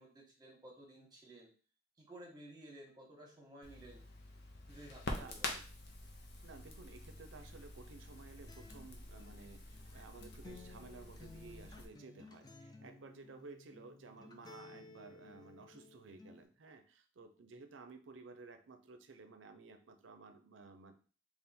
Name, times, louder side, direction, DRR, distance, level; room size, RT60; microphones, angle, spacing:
voice 1, 0.0-1.5 2.0-4.0 4.7-5.6, right 1 dB, 20° right, 0 dB, 1.1 m, -55 dB
Crackle, 3.6-11.8, left 2 dB, 60° left, 0.8 m, -47 dB
voice 2, 6.4-20.9, right 4 dB, 80° right, 8 dB, 0.5 m, -55 dB
Acoustic guitar, 8.5-16.5, left 3 dB, 20° left, 0.4 m, -57 dB
3.6 x 2.4 x 4.1 m, 0.39 s
head